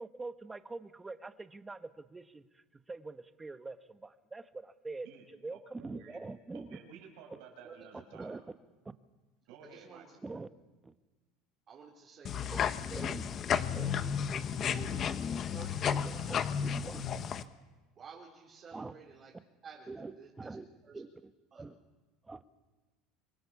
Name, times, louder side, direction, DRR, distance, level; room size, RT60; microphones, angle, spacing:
voice 1, 0.0-5.1 5.4-6.8 8.1-8.4 10.2-10.5 10.8-10.9 12.5-13.3 13.7-14.0 15.9-17.0 18.7-18.9 19.9-21.8 22.2-22.4, right 3 dB, 15° right, 11 dB, 1.0 m, -44 dB
voice 2, 5.0-6.2 6.5-8.3 9.5-10.1, right 6 dB, 75° right, 2 dB, 6.1 m, -53 dB
voice 3, 9.6-10.2 11.7-13.1 14.3-16.3 18.0-19.3 19.6-19.9 20.2-20.5 20.8-21.0 21.5-21.6, right 6 dB, 35° right, -3 dB, 3.9 m, -52 dB
sound 1, 12.2-17.4, left 8 dB, 35° left, 1.1 m, -33 dB
25.5 x 22.5 x 7.1 m, 1.2 s
supercardioid pair, 130°, 0 cm